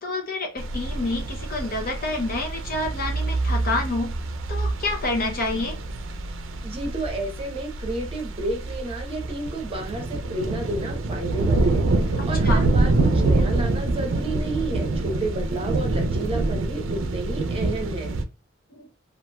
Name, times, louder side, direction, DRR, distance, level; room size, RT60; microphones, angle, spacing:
voice 1, 0.0-4.2 4.5-5.8 12.2-12.6 18.7-18.9, left 2 dB, 50° left, 3 dB, 0.6 m, -28 dB
sound 1, 0.6-18.2, right 2 dB, 90° right, 0.4 m, -26 dB
voice 2, 6.6-18.1, right 2 dB, 30° right, 2 dB, 0.8 m, -31 dB
3.0 x 2.5 x 2.2 m, 0.29 s
head